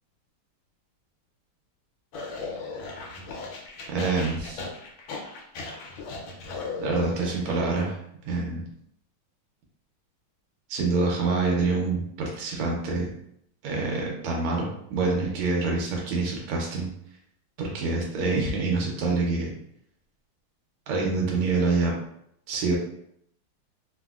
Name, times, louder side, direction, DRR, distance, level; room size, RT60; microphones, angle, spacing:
sound 1, 2.1-7.5, left 4 dB, 75° left, 1.3 m, -37 dB
voice 1, 3.9-4.6 6.8-8.0 8.2-8.6 10.7-13.1 13.6-16.9 17.6-19.5 20.9-21.9 22.5-22.8, right 3 dB, 85° right, -1 dB, 1.5 m, -26 dB
3.6 x 2.0 x 2.3 m, 0.72 s
omnidirectional pair, 2.4 m